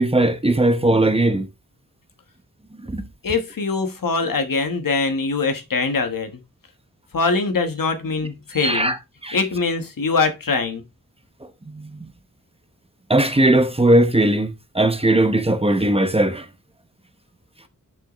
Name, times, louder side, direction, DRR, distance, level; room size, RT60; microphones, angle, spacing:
voice 1, 0.0-1.5 2.8-3.1 8.5-9.0 9.2-9.4 11.6-12.1 13.1-16.5, right 1 dB, 15° right, 0.8 m, -19 dB
voice 2, 3.2-6.4 7.1-8.9 9.3-10.8, left 4 dB, 80° left, 1.3 m, -23 dB
6.4 x 6.4 x 3.0 m
wide cardioid pair, 95°, 33 cm